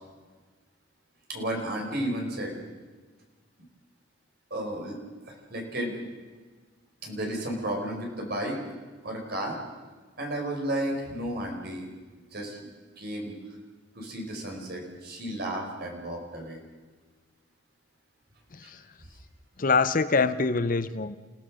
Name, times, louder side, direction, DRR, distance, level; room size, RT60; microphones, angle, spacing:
voice 1, 1.3-2.5 4.5-5.0 5.2-6.0 7.0-8.6 9.0-9.6 10.2-11.9 12.3-12.6 13.0-13.3 14.0-16.6 18.6-18.7, right 1 dB, 50° right, 1 dB, 5.2 m, -33 dB
voice 2, 18.5-18.8 19.6-21.2, left 4 dB, 45° left, 13 dB, 0.7 m, -25 dB
29.0 x 17.0 x 6.4 m, 1.4 s
head